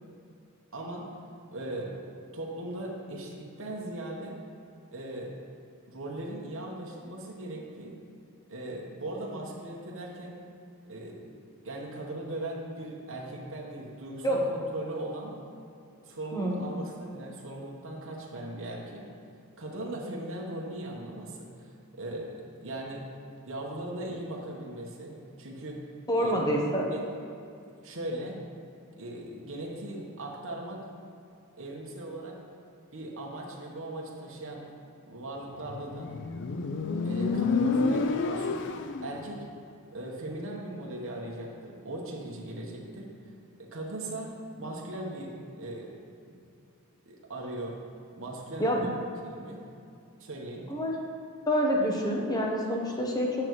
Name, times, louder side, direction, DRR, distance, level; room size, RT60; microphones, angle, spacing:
voice 1, 0.7-1.1 1.5-2.0 2.3-4.4 4.9-5.3 5.9-8.0 8.5-10.4 10.8-11.3 11.6-15.4 16.0-19.1 19.6-23.0 23.4-25.8 26.1-26.3 26.9-27.0 27.8-28.4 29.0-30.8 31.6-32.4 32.9-34.6 35.0-36.1 37.0-38.6 39.0-39.5 39.9-43.1 43.6-46.0 46.3-46.4 47.0-47.8 48.1-48.9 49.2-49.6 50.2-50.7, right 1 dB, 65° right, -2 dB, 1.1 m, -39 dB
voice 2, 16.3-16.6 26.1-26.9 48.6-48.9 50.7-51.0 51.5-53.5, equal, 20° left, -1 dB, 0.9 m, -27 dB
Motorcycle, 35.7-39.2, left 4 dB, 55° left, 0.4 m, -29 dB
8.6 x 6.9 x 3.1 m, 2.5 s
head